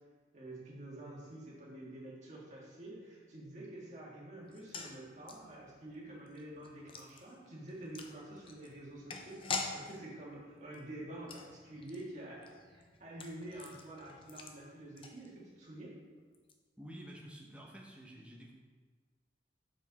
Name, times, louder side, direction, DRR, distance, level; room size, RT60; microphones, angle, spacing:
voice 1, 0.3-15.9, right 1 dB, 40° right, -5 dB, 1.7 m, -48 dB
sound 1, 4.5-15.7 16.0-16.1 16.3-16.5, left 4 dB, 30° left, 0.5 m, -46 dB
voice 2, 16.8-18.5, equal, 5° right, -3 dB, 0.8 m, -50 dB
6.3 x 5.1 x 4.0 m, 1.5 s
head